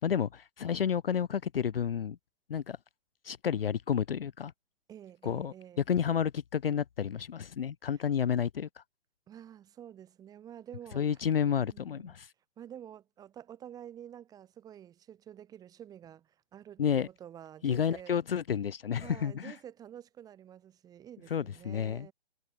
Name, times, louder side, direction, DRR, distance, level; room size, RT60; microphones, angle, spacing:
voice 1, 0.0-2.2 2.5-2.8 3.2-4.5 5.2-8.8 10.9-12.3 16.8-17.1 17.6-19.5 21.3-22.1, left 8 dB, 60° left, 0.7 m, -30 dB
voice 2, 4.9-5.8 9.3-11.2 11.5-12.2 12.6-18.2 19.0-22.1, right 10 dB, 10° right, 2.2 m, -49 dB
figure-of-eight pair, 140°, 33 cm